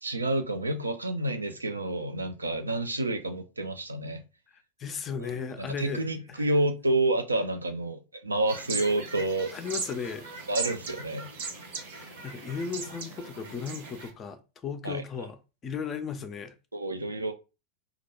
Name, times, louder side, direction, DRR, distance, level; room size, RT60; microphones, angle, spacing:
voice 1, 0.0-4.2 5.2-9.5 10.5-11.3 14.8-15.0 16.7-17.3, right 2 dB, 80° right, 0.4 m, -29 dB
voice 2, 4.8-6.0 6.4-6.5 9.5-10.3 11.9-15.4 15.6-16.5, left 6 dB, 25° left, 0.4 m, -35 dB
sound 1, 8.5-14.1, right 4 dB, 60° right, 0.8 m, -38 dB
2.3 x 2.1 x 3.0 m
figure-of-eight pair, 90°, 0 cm